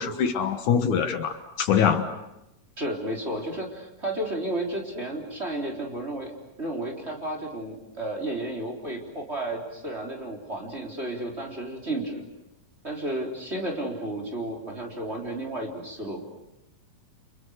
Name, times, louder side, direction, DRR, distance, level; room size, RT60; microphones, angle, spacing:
voice 1, 0.0-2.1, left 7 dB, 70° left, 8 dB, 2.7 m, -24 dB
voice 2, 2.8-6.3 6.6-12.2 12.8-16.2, right 1 dB, 20° right, 1 dB, 3.9 m, -32 dB
29.5 x 28.0 x 6.5 m, 0.91 s
omnidirectional pair, 3.8 m